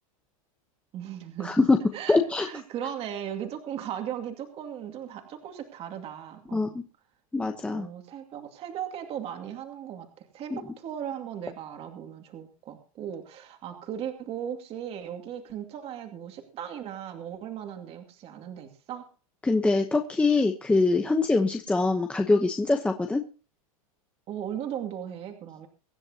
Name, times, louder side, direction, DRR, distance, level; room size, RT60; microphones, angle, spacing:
voice 1, 0.9-1.7 1.9-6.7 7.7-19.1 24.3-25.7, right 9 dB, 30° right, 5 dB, 2.3 m, -37 dB
voice 2, 1.4-1.8 2.1-2.5 6.5-6.7 7.3-7.9 19.4-23.2, left 3 dB, 5° left, 4 dB, 0.9 m, -23 dB
24.0 x 10.5 x 2.9 m, 0.37 s
supercardioid pair, 140°, 18 cm